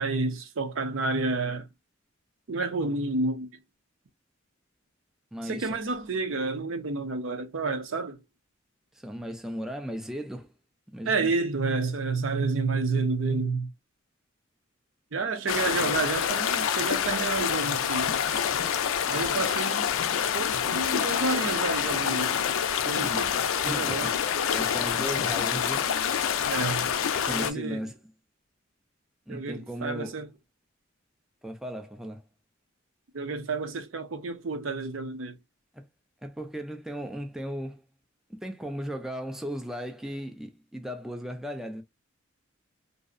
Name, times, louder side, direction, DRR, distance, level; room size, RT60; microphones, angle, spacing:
voice 1, 0.0-1.7 2.5-3.5 5.4-8.2 11.1-13.7 15.1-18.1 19.1-19.9 20.3-22.4 22.9-23.3 23.6-24.2 26.5-26.9 27.3-27.8 29.3-30.3 33.1-35.3, right 3 dB, 75° right, 0.6 m, -30 dB
voice 2, 5.3-5.8 8.9-10.5 10.9-11.3 23.0-23.3 23.7-24.1 24.5-25.9 27.2-28.0 29.3-30.2 31.4-32.2 35.7-35.9 36.2-37.8 38.3-41.8, equal, ahead, 0.3 m, -36 dB
sound 1, 15.5-27.5, left 8 dB, 85° left, 0.4 m, -27 dB
2.6 x 2.0 x 2.4 m
head